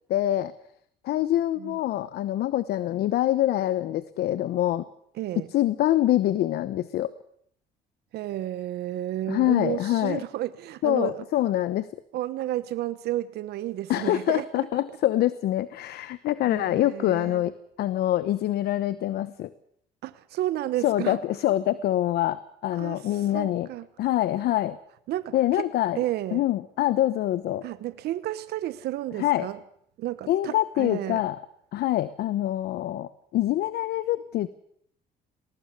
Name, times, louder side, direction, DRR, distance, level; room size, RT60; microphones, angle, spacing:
voice 1, 0.1-0.5 1.0-4.8 5.5-7.1 9.3-10.2 10.8-11.9 13.9-19.5 20.8-23.7 24.0-24.8 25.3-26.0 26.3-27.6 29.2-29.5 30.3-31.4 31.7-34.5, left 13 dB, 70° left, 15 dB, 1.0 m, -25 dB
voice 2, 5.2-5.5 8.1-11.2 12.1-14.8 16.5-17.4 20.0-21.2 22.7-23.9 25.1-25.6 25.9-26.4 27.6-29.6 30.0-31.2, right 14 dB, 75° right, 13 dB, 1.1 m, -32 dB
20.5 x 18.5 x 8.3 m, 0.68 s
cardioid pair, 110°, 17 cm